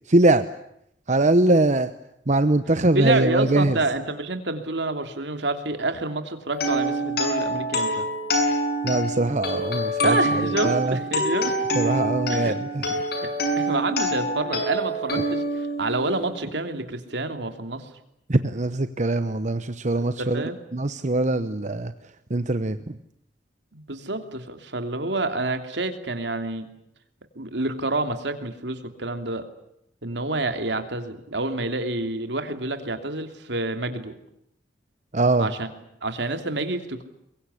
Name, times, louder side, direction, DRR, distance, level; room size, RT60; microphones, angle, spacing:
voice 1, 0.1-0.5 1.1-1.9 2.3-3.8 8.8-11.0 11.7-12.9 18.3-20.4 20.7-21.9 22.3-23.0 35.1-35.5, right 2 dB, 40° right, 11 dB, 1.0 m, -22 dB
voice 2, 2.9-8.1 10.0-11.5 12.3-12.6 13.1-17.9 19.9-20.6 23.7-26.7 27.3-29.5 30.0-34.1 35.4-35.7 36.0-37.0, right 2 dB, 70° right, 7 dB, 3.0 m, -28 dB
sound 1, 6.5-16.4, equal, 60° left, 6.9 m, -26 dB
23.5 x 23.0 x 9.9 m, 0.76 s
head